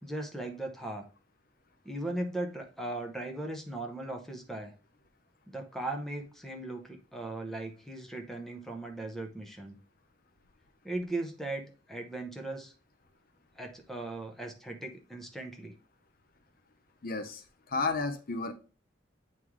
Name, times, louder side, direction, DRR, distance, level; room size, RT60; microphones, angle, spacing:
voice 1, 0.0-1.1 1.8-4.7 5.5-9.8 10.8-12.7 13.6-15.7, right 2 dB, ahead, 2 dB, 0.8 m, -38 dB
voice 2, 17.0-18.5, left 3 dB, 50° left, 7 dB, 0.6 m, -32 dB
8.4 x 3.2 x 3.6 m, 0.36 s
head